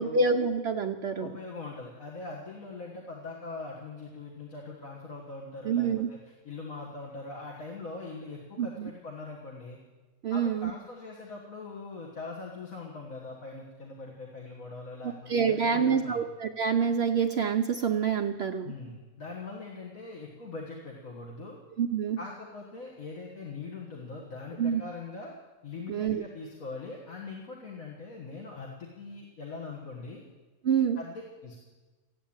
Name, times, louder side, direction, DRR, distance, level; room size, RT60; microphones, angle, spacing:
voice 1, 0.0-1.3 5.6-6.1 8.6-8.9 10.2-10.7 15.0-18.7 21.8-22.2 24.6-24.8 25.9-26.2 30.6-31.0, right 6 dB, 60° right, 6 dB, 0.8 m, -27 dB
voice 2, 1.2-9.8 10.3-16.2 18.6-21.6 22.2-25.3 25.6-30.2 31.0-31.6, left 3 dB, 80° left, -1 dB, 2.2 m, -42 dB
14.5 x 9.1 x 8.8 m, 1.3 s
omnidirectional pair, 1.4 m